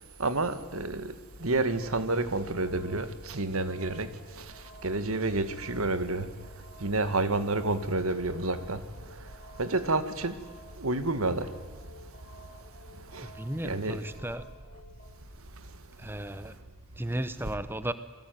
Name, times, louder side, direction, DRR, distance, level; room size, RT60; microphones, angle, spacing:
voice 1, 0.2-1.1 1.4-4.1 4.8-6.3 6.8-8.8 9.6-10.4 10.8-11.5 13.1-13.3 13.6-14.0, right 2 dB, 80° right, 1.8 m, -29 dB
sound 1, 1.4-15.1, left 1 dB, 40° left, 3.7 m, -54 dB
voice 2, 13.2-14.4 16.0-16.6 17.0-17.9, right 1 dB, 10° right, 0.9 m, -34 dB
28.0 x 20.5 x 9.4 m
head